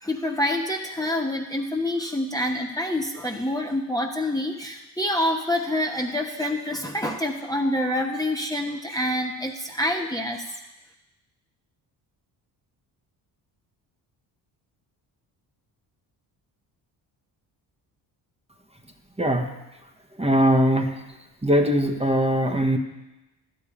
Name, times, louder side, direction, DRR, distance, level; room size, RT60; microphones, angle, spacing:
voice 1, 0.0-10.4, left 1 dB, 10° left, 1 dB, 1.2 m, -27 dB
voice 2, 20.2-20.9 21.4-22.8, equal, 10° right, 3 dB, 1.3 m, -20 dB
12.0 x 5.4 x 8.6 m, 1.0 s
hypercardioid pair, 55°, 49 cm